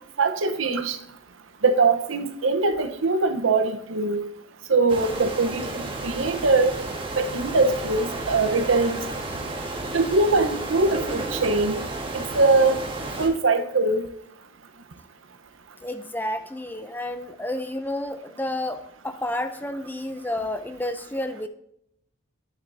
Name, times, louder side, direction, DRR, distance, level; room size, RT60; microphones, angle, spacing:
voice 1, 0.2-1.0 1.6-4.2 4.7-6.7 7.2-9.0 9.9-11.7 12.1-12.8 13.2-14.1, right 3 dB, 85° right, 8 dB, 1.0 m, -22 dB
sound 1, 4.9-13.3, right 2 dB, 25° right, 1.6 m, -32 dB
voice 2, 15.8-21.5, left 1 dB, 10° left, 9 dB, 0.5 m, -30 dB
10.0 x 8.1 x 2.7 m, 0.73 s
head